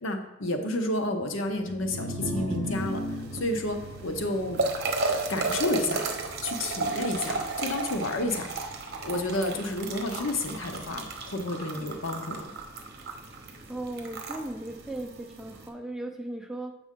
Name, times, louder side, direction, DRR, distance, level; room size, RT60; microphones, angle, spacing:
voice 1, 0.0-3.0 3.3-4.6 5.3-6.0 6.4-8.5 9.0-12.4, left 1 dB, 65° left, 5 dB, 0.8 m, -30 dB
sound 1, 1.6-7.9, equal, 80° right, 0.7 m, -38 dB
sound 2, 2.7-15.7, right 3 dB, 50° right, 0.9 m, -34 dB
sound 3, 3.4-11.2, equal, 30° left, 2.4 m, -52 dB
voice 2, 13.7-16.7, right 1 dB, 5° right, 2 dB, 0.5 m, -37 dB
7.3 x 5.2 x 3.7 m, 1.0 s
head